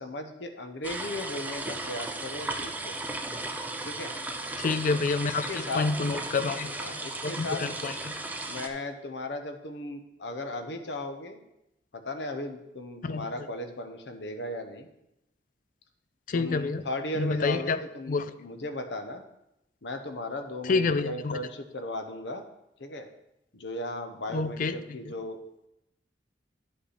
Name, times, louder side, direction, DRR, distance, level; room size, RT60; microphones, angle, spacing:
voice 1, 0.0-2.9 3.8-4.1 5.2-5.9 6.8-7.6 8.5-11.4 11.9-14.9 16.3-19.2 19.8-22.4 22.8-23.1 23.5-25.4, left 1 dB, 70° left, 7 dB, 0.9 m, -36 dB
sound 1, 0.8-8.7, right 2 dB, 10° right, 0.5 m, -36 dB
voice 2, 4.6-6.7 7.2-7.9 13.0-13.3 16.3-16.8 17.2-17.8 18.1-18.3 20.7-21.4 24.3-24.7, left 4 dB, 50° left, 13 dB, 0.4 m, -28 dB
9.7 x 5.5 x 4.3 m, 0.86 s
head